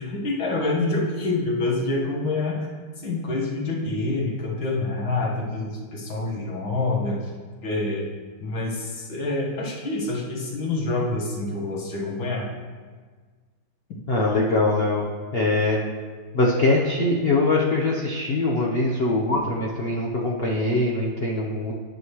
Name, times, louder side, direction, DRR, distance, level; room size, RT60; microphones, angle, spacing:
voice 1, 0.0-2.7 3.0-7.2 7.6-8.1 8.4-12.5, left 2 dB, 65° left, -2 dB, 2.2 m, -27 dB
voice 2, 14.1-15.0 15.3-15.8 16.3-21.7, left 2 dB, 50° left, -3 dB, 0.7 m, -22 dB
9.6 x 9.2 x 3.2 m, 1.5 s
omnidirectional pair, 2.3 m